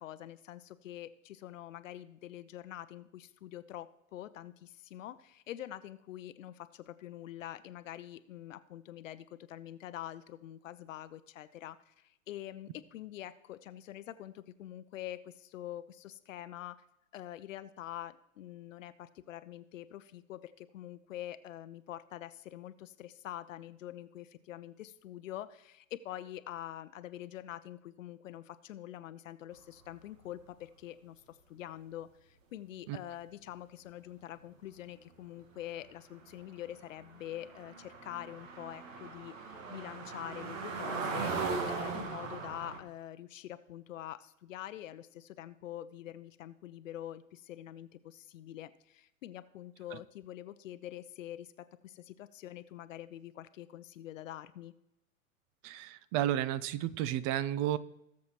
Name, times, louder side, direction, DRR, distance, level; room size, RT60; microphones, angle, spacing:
voice 1, 0.0-16.8 17.1-41.3 41.7-54.7, left 12 dB, 65° left, 13 dB, 0.6 m, -45 dB
sound 1, 36.5-36.6 36.7-42.8, right 4 dB, 65° right, 1.7 m, -38 dB
voice 2, 55.6-57.8, right 12 dB, 30° right, 17 dB, 0.4 m, -32 dB
18.5 x 7.3 x 3.0 m, 0.84 s
hypercardioid pair, 100°, 41 cm